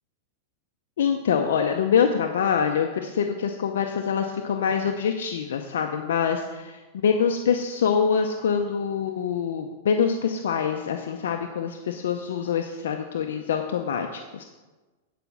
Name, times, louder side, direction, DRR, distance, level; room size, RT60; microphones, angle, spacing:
voice 1, 1.0-14.4, left 7 dB, 80° left, 4 dB, 0.7 m, -25 dB
9.2 x 5.1 x 7.1 m, 1.2 s
hypercardioid pair, 135°, 0 cm